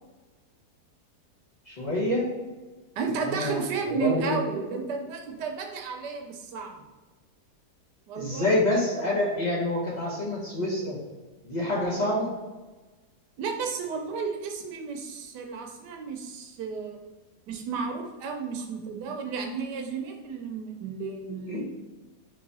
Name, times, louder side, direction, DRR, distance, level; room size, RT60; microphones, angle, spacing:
voice 1, 1.7-2.3 3.2-4.4 8.1-11.0 11.4-12.3 21.5-21.6, left 1 dB, 30° left, -7 dB, 0.9 m, -27 dB
voice 2, 3.0-6.8 8.1-8.5 13.4-17.0 17.5-21.7, right 5 dB, 85° right, 3 dB, 1.3 m, -33 dB
3.8 x 3.1 x 4.0 m, 1.2 s
omnidirectional pair, 1.8 m